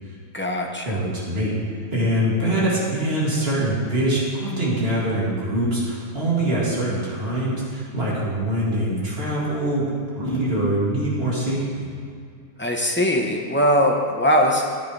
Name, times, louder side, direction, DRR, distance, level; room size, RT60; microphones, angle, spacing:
voice 1, 0.3-1.0 12.6-14.6, equal, 10° left, 0 dB, 0.6 m, -20 dB
voice 2, 0.8-1.6 1.9-9.9 10.2-11.9, right 1 dB, 35° right, -7 dB, 2.9 m, -23 dB
15.0 x 10.0 x 3.4 m, 2.3 s
omnidirectional pair, 1.9 m